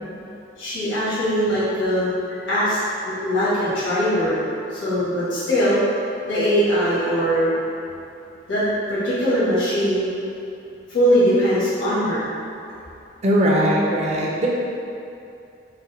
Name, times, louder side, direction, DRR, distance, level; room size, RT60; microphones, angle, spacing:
voice 1, 0.6-4.4 4.7-5.8 6.3-7.5 8.5-10.1 10.9-12.3, equal, 80° left, -11 dB, 1.5 m, -21 dB
voice 2, 13.2-14.5, equal, 35° right, -3 dB, 0.5 m, -19 dB
4.0 x 2.2 x 4.0 m, 2.6 s
head